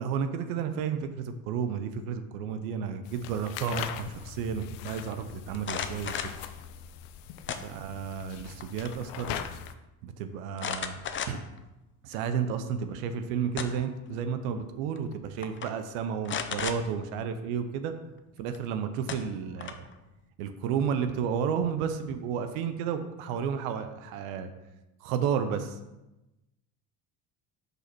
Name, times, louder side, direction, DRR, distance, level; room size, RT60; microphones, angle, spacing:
voice 1, 0.0-6.1 7.6-9.4 10.0-11.0 11.3-11.4 12.0-17.9 18.4-19.8 20.4-24.5 25.0-25.8, right 7 dB, 85° right, 8 dB, 0.7 m, -32 dB
sound 1, 3.0-9.7, left 10 dB, 80° left, 0.6 m, -41 dB
sound 2, 5.5-6.4 7.5-8.1 8.5-9.0 9.3-9.4 10.6-11.6 12.1-12.2 13.2-14.0 15.0-15.1 15.4-15.7 16.2-16.8 18.5-18.6 19.1-19.9, left 7 dB, 30° left, 0.6 m, -35 dB
5.4 x 4.1 x 6.0 m, 0.98 s
supercardioid pair, 95°, 42 cm